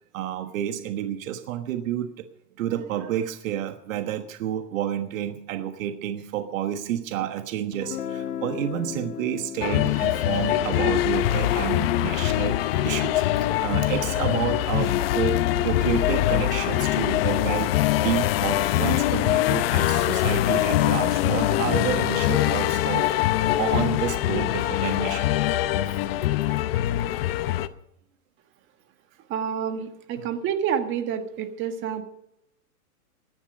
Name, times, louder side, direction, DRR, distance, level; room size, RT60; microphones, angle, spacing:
voice 1, 0.1-2.2 2.6-12.6 12.8-23.1 23.4-25.3 25.9-26.0 30.2-30.3, right 11 dB, 55° right, 8 dB, 1.4 m, -30 dB
Guitar, 7.7-13.5, left 8 dB, 75° left, 1.7 m, -38 dB
sound 1, 9.6-27.7, left 14 dB, 40° left, 0.7 m, -23 dB
voice 2, 29.3-32.0, right 8 dB, 25° right, 8 dB, 1.6 m, -28 dB
17.0 x 11.5 x 5.2 m, 0.80 s
hypercardioid pair, 145°, 46 cm